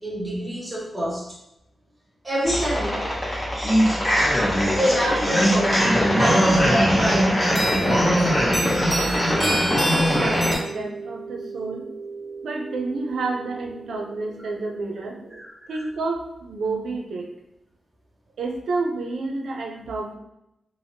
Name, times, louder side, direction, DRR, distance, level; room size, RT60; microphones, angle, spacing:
voice 1, 0.0-1.3 2.2-3.1 4.8-8.2 15.4-15.8, equal, 15° right, -5 dB, 1.4 m, -26 dB
sound 1, 2.4-10.6, equal, 15° left, 0.9 m, -20 dB
sound 2, 8.8-15.4, right 4 dB, 40° right, 0.5 m, -39 dB
voice 2, 9.4-11.9 12.4-15.2 15.7-17.3 18.4-20.1, right 3 dB, 85° right, 1 dB, 0.5 m, -30 dB
3.4 x 2.1 x 2.6 m, 0.85 s
cardioid pair, 75°, 0 cm